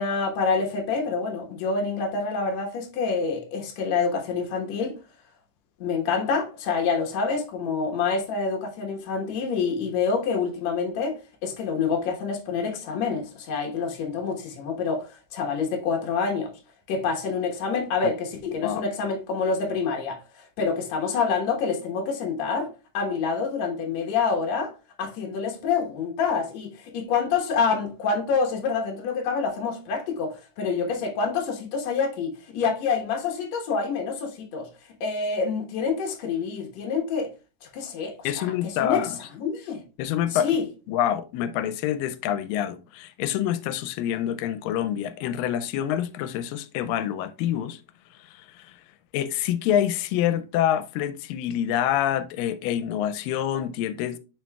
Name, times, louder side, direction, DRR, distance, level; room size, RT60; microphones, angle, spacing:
voice 1, 0.0-5.0 5.8-16.5 16.9-24.7 25.0-34.7 35.0-37.3 37.6-38.5 38.8-39.1 39.4-39.8 40.3-40.7, left 5 dB, 60° left, 2.2 m, -27 dB
voice 2, 38.2-39.2 40.0-40.5 40.9-47.8 48.2-48.8 49.1-54.2, left 10 dB, 90° left, 2.2 m, -26 dB
10.5 x 4.3 x 2.3 m
omnidirectional pair, 3.8 m